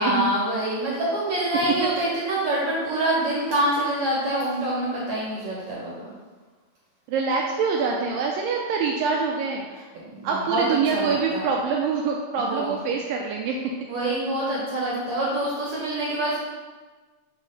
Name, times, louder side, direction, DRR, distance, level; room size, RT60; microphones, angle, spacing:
voice 1, 0.0-6.0 9.7-10.6 10.9-11.5 12.4-12.8 13.9-16.4, right 1 dB, 65° right, -5 dB, 1.5 m, -26 dB
voice 2, 7.1-9.7 10.2-13.6, right 5 dB, 85° right, 0 dB, 2.0 m, -25 dB
8.3 x 3.0 x 5.4 m, 1.3 s
omnidirectional pair, 4.5 m